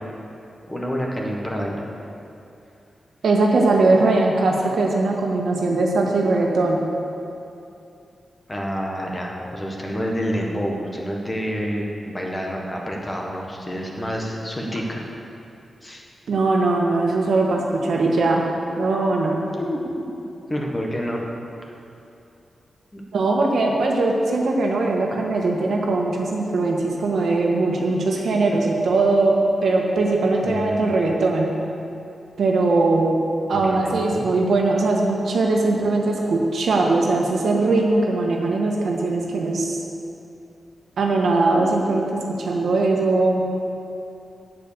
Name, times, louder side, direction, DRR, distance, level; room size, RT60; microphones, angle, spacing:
voice 1, 0.7-1.8 8.5-15.0 15.8-16.0 19.6-20.0 20.5-21.2 22.9-23.0 30.4-31.0 33.5-34.3, equal, 20° left, -1 dB, 1.6 m, -28 dB
voice 2, 3.2-6.8 16.3-18.5 18.8-19.4 23.1-31.5 32.4-33.2 33.5-39.8 41.0-43.5, right 2 dB, 80° right, 0 dB, 1.5 m, -20 dB
8.7 x 8.2 x 6.9 m, 2.7 s
wide cardioid pair, 110°, 0 cm